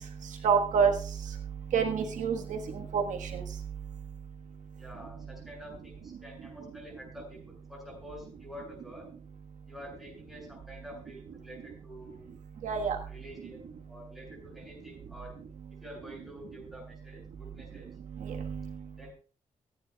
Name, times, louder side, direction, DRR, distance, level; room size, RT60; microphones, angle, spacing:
voice 1, 0.4-0.9 1.7-3.4 12.6-13.0 18.2-18.6, right 6 dB, 85° right, 4 dB, 1.5 m, -27 dB
voice 2, 4.8-9.1 9.7-12.2 13.1-15.3 15.8-17.9 18.9-19.1, equal, ahead, -1 dB, 7.7 m, -48 dB
24.0 x 10.0 x 2.3 m, 0.39 s
cardioid pair, 115°, 13 cm